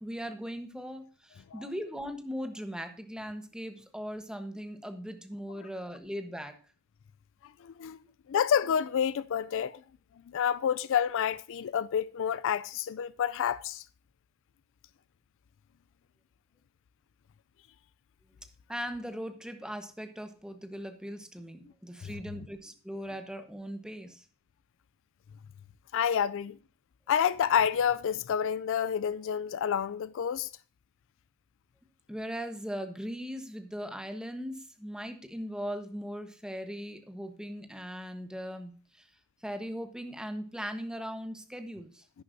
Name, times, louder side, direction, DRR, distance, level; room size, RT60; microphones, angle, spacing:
voice 1, 0.0-6.6 18.7-24.2 32.1-39.1 39.4-42.0, equal, 5° right, 1.1 m, -39 dB
voice 2, 7.6-8.0 8.3-9.8 10.3-13.8 22.0-22.1 25.9-26.6 27.1-30.5 42.1-42.2, left 8 dB, 60° left, 0.4 m, -29 dB
11.0 x 9.6 x 2.7 m
head